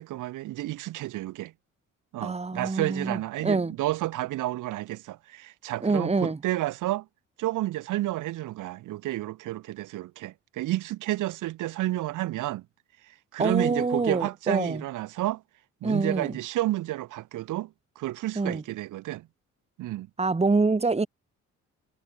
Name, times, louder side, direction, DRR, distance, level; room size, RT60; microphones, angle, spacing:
voice 1, 0.0-1.5 2.1-7.1 7.4-12.6 13.0-15.4 15.8-19.3 19.8-20.1, right 16 dB, 90° right, 3.4 m, -31 dB
voice 2, 2.2-3.7 5.8-6.4 13.4-14.8 15.8-16.4 18.4-18.6 20.2-21.1, right 3 dB, 20° right, 2.8 m, -26 dB
cardioid pair, 90°, 30 cm